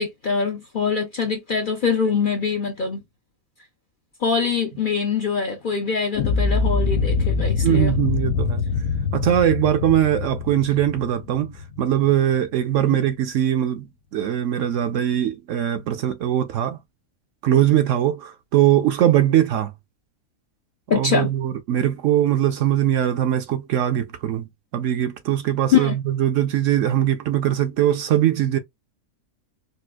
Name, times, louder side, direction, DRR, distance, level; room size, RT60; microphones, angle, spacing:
voice 1, 0.0-3.0 4.2-8.0 12.9-13.0 20.9-21.3 25.7-26.0, left 6 dB, 55° left, 0.6 m, -23 dB
sound 1, 6.1-12.2, left 4 dB, 85° left, 1.1 m, -24 dB
voice 2, 7.6-8.6 9.1-13.9 14.1-16.8 17.4-19.7 20.9-24.5 24.7-28.6, right 11 dB, 70° right, 0.9 m, -21 dB
4.3 x 2.4 x 2.3 m
omnidirectional pair, 1.5 m